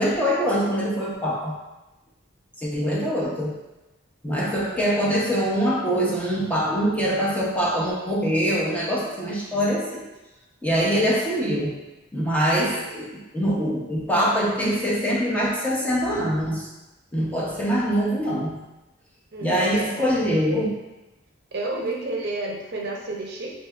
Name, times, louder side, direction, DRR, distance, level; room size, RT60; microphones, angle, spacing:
voice 1, 0.0-1.6 2.6-3.6 4.2-10.0 10.6-11.8 12.1-16.7 17.1-18.6 19.4-20.8, equal, 10° left, -5 dB, 0.6 m, -23 dB
voice 2, 19.3-20.0 21.5-23.6, right 2 dB, 55° right, -1 dB, 0.6 m, -30 dB
4.5 x 2.9 x 2.2 m, 1.0 s
head